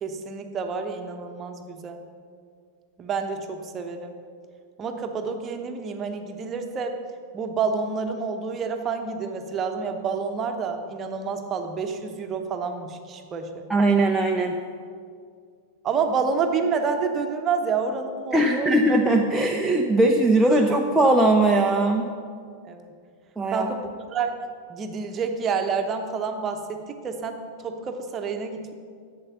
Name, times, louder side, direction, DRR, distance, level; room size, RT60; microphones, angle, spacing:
voice 1, 0.0-2.0 3.0-4.2 4.8-7.0 7.3-13.7 15.8-18.7 22.6-22.9 23.5-24.4 24.7-28.7, right 5 dB, 25° right, 6 dB, 1.0 m, -29 dB
voice 2, 13.7-14.5 18.3-22.1 23.4-23.7, right 2 dB, 5° right, 0 dB, 0.6 m, -20 dB
11.0 x 7.7 x 5.9 m, 2.2 s
figure-of-eight pair, 90°, 0 cm